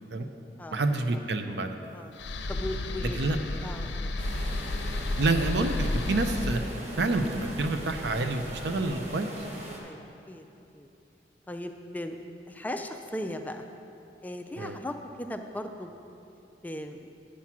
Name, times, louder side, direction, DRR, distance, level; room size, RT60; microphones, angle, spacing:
voice 1, 0.7-1.9 3.2-3.4 3.8-3.9 5.2-6.6 7.0-9.3 14.6-14.8, right 2 dB, 70° right, 7 dB, 0.6 m, -28 dB
sound 1, 2.2-9.3, left 2 dB, 80° left, 0.5 m, -33 dB
voice 2, 2.5-3.2 3.6-4.1 9.8-10.5 10.7-10.9 11.5-12.2 12.5-13.7 14.2-15.9 16.6-17.1, left 1 dB, 10° left, 5 dB, 0.3 m, -37 dB
sound 2, 4.2-9.8, right 1 dB, 40° right, 1.1 m, -41 dB
8.6 x 5.8 x 6.0 m, 2.8 s
head